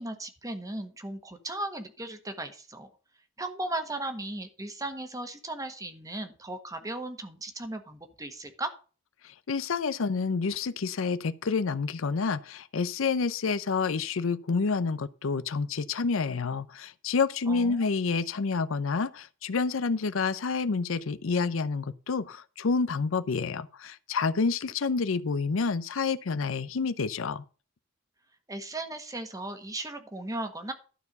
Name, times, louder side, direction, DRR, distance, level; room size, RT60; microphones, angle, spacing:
voice 1, 0.0-2.9 3.4-8.7 17.4-17.9 28.5-30.7, right 2 dB, 15° right, 1.4 m, -36 dB
voice 2, 9.5-27.4, left 4 dB, 70° left, 0.6 m, -28 dB
12.0 x 4.6 x 6.8 m
head